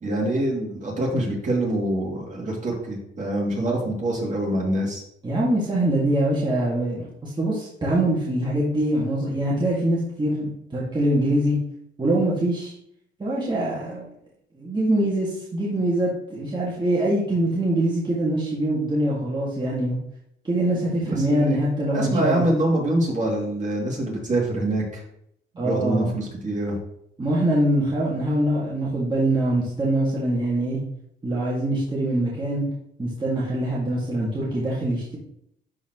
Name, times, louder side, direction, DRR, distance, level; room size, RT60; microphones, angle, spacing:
voice 1, 0.0-5.0 21.0-21.6 21.9-25.0 25.5-26.8, right 1 dB, 40° right, -2 dB, 2.7 m, -25 dB
voice 2, 5.2-11.6 12.0-12.7 13.2-14.1 14.5-20.0 20.4-22.5 25.6-26.1 27.2-30.8 31.2-32.7 33.0-35.2, right 1 dB, 20° right, -6 dB, 2.0 m, -23 dB
11.5 x 4.3 x 3.0 m, 0.72 s
cardioid pair, 90°, 20 cm